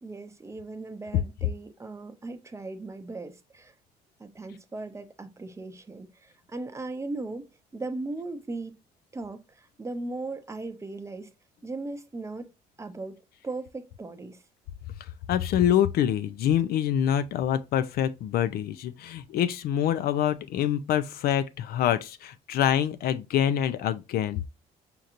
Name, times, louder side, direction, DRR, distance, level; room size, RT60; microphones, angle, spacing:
voice 1, 0.0-3.7 4.2-7.5 7.7-8.8 9.1-11.3 11.6-12.5 12.8-14.4, right 2 dB, 15° right, 0.6 m, -38 dB
voice 2, 15.3-24.4, left 10 dB, 65° left, 0.4 m, -25 dB
5.1 x 2.9 x 2.4 m
cardioid pair, 110°, 17 cm